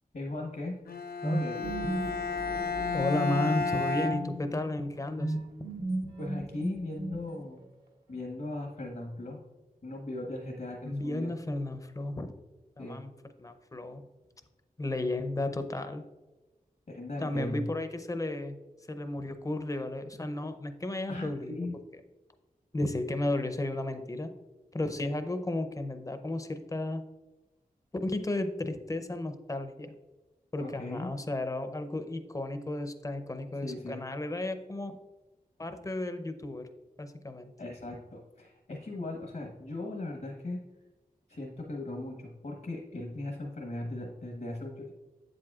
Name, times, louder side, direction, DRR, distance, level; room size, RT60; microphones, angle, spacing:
voice 1, 0.1-0.8 1.2-1.7 6.2-7.6 8.1-9.4 9.8-11.3 12.8-13.0 16.9-17.7 21.1-21.8 30.6-31.1 33.6-34.0 37.6-40.6 41.3-44.9, left 2 dB, 65° left, 1 dB, 1.1 m, -38 dB
Bowed string instrument, 0.9-5.0, left 4 dB, 85° left, 0.4 m, -32 dB
sound 1, 1.2-3.8 5.2-7.6, right 2 dB, 90° right, 1.6 m, -35 dB
voice 2, 2.9-5.3 10.8-12.3 12.8-13.1 13.4-14.0 14.8-16.0 17.2-18.6 18.9-21.7 22.7-24.3 24.7-27.0 28.0-29.9 30.5-34.9 35.6-36.7 37.0-37.5, left 2 dB, 20° left, 9 dB, 0.6 m, -33 dB
8.0 x 7.6 x 2.4 m, 1.1 s
wide cardioid pair, 70°, 15 cm